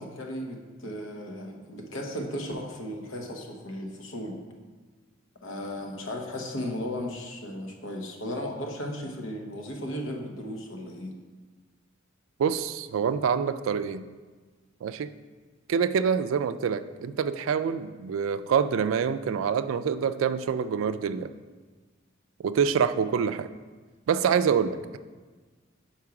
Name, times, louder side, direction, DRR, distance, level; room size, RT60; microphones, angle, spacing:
voice 1, 0.0-4.4 5.4-11.2, left 1 dB, 80° left, 2 dB, 0.9 m, -35 dB
voice 2, 12.4-14.1 14.8-15.1 15.7-21.3 22.4-23.5 24.1-25.0, right 7 dB, 85° right, 12 dB, 0.3 m, -26 dB
5.8 x 4.5 x 4.8 m, 1.4 s
head